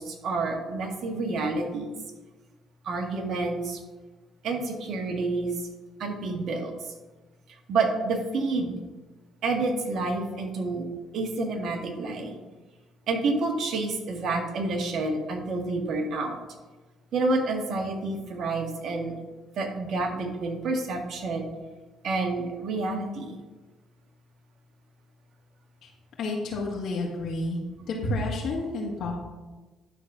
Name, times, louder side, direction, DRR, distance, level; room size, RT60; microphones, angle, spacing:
voice 1, 0.0-2.0 2.8-3.8 4.4-5.6 6.0-6.9 7.7-8.8 9.4-10.8 11.1-12.4 13.1-16.4 17.1-19.2 19.6-21.5 22.0-23.4, right 3 dB, 65° right, 3 dB, 1.8 m, -29 dB
voice 2, 26.2-27.6 27.9-29.2, left 2 dB, 70° left, -3 dB, 2.0 m, -30 dB
11.5 x 4.0 x 6.1 m, 1.2 s
supercardioid pair, 65°, 0 cm